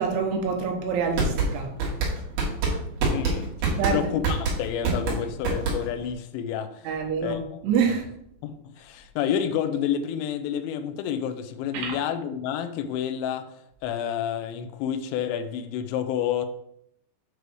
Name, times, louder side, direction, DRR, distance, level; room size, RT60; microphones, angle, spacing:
voice 1, 0.0-1.8 3.7-4.1 6.8-8.0 11.7-12.0, right 6 dB, 75° right, 2 dB, 3.4 m, -26 dB
sound 1, 0.9-6.1, right 3 dB, 55° right, 3.4 m, -26 dB
voice 2, 3.0-6.9 7.2-7.4 8.4-13.4 13.8-16.5, left 9 dB, 80° left, 9 dB, 2.7 m, -29 dB
8.2 x 3.3 x 6.1 m, 0.74 s
omnidirectional pair, 5.8 m